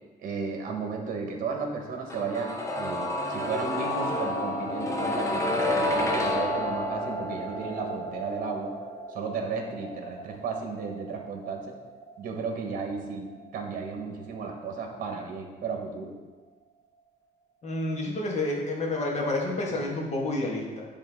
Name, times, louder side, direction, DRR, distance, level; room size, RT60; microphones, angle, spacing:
voice 1, 0.2-8.7 9.1-11.7 12.2-16.1, right 4 dB, 55° right, 2 dB, 1.3 m, -34 dB
sound 1, 2.1-13.9 14.2-14.3, left 1 dB, 15° left, 0.9 m, -31 dB
voice 2, 17.6-20.8, left 2 dB, 40° left, -2 dB, 1.6 m, -29 dB
10.0 x 3.6 x 3.6 m, 1.3 s
cardioid pair, 110°, 17 cm